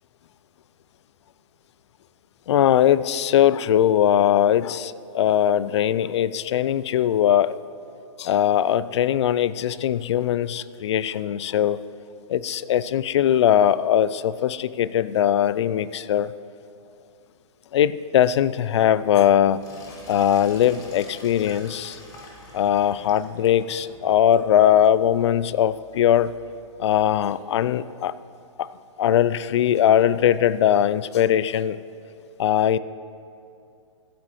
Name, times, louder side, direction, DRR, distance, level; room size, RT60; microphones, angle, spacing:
voice 1, 2.5-7.5 8.2-11.8 12.3-16.3 17.7-19.6 20.1-22.0 22.5-26.3 26.8-28.1 28.6-28.7 29.0-31.8 32.4-32.8, left 10 dB, 60° left, 17 dB, 0.4 m, -20 dB
Sink (filling or washing), 19.5-27.3, left 2 dB, 20° left, 1.8 m, -48 dB
24.5 x 8.5 x 3.2 m, 2.5 s
hypercardioid pair, 130°, 17 cm